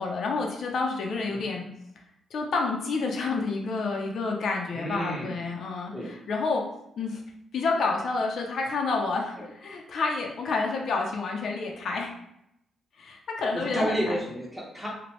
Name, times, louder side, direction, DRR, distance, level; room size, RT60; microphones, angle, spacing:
voice 1, 0.0-1.7 2.3-6.6 7.0-7.2 7.5-12.1 13.0-14.0, left 4 dB, 60° left, 0 dB, 0.4 m, -29 dB
voice 2, 4.7-5.4 5.9-6.1 13.5-14.9, equal, 5° right, -4 dB, 0.9 m, -31 dB
3.0 x 2.1 x 2.9 m, 0.80 s
cardioid pair, 110°, 0 cm